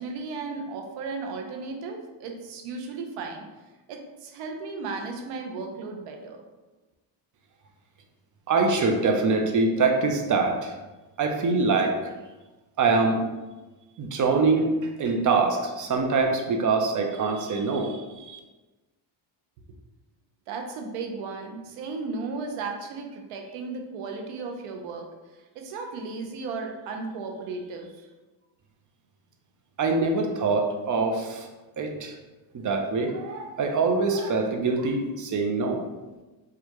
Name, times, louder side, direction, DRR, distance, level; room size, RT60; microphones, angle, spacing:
voice 1, 0.0-3.5 3.9-6.4 20.5-28.1, right 4 dB, 90° right, 3 dB, 0.7 m, -35 dB
voice 2, 8.5-10.7 11.2-12.1 12.8-13.2 14.0-18.4 29.8-31.5 31.8-32.1 32.5-35.8, right 3 dB, 40° right, 4 dB, 0.6 m, -24 dB
4.6 x 2.4 x 2.9 m, 1.2 s
cardioid pair, 100°, 50 cm